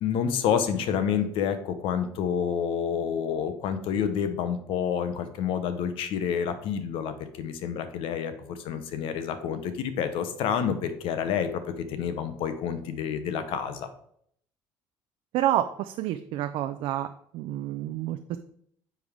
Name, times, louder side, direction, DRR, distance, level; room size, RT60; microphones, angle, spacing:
voice 1, 0.0-13.9, left 8 dB, 75° left, 10 dB, 0.8 m, -29 dB
voice 2, 15.3-17.1 17.3-18.4, right 13 dB, 75° right, 8 dB, 0.4 m, -28 dB
9.3 x 3.5 x 3.6 m, 0.66 s
supercardioid pair, 85°, 9 cm